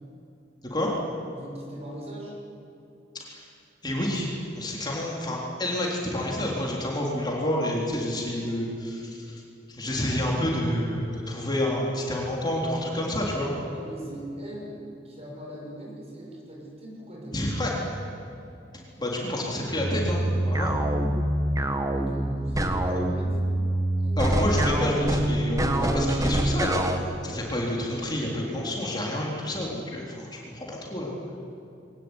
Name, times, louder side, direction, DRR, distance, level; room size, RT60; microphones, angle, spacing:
voice 1, 1.3-2.4 13.7-17.4 21.9-23.4 24.0-24.4, equal, 35° right, -3 dB, 7.2 m, -40 dB
voice 2, 3.8-4.3 4.6-9.4 9.7-13.5 17.3-17.7 19.0-20.8 22.8-23.0 24.2-31.3, left 1 dB, 25° left, -3 dB, 3.7 m, -29 dB
sound 1, 19.8-27.0, right 1 dB, 20° right, 1.6 m, -25 dB
22.5 x 19.0 x 9.8 m, 2.7 s
head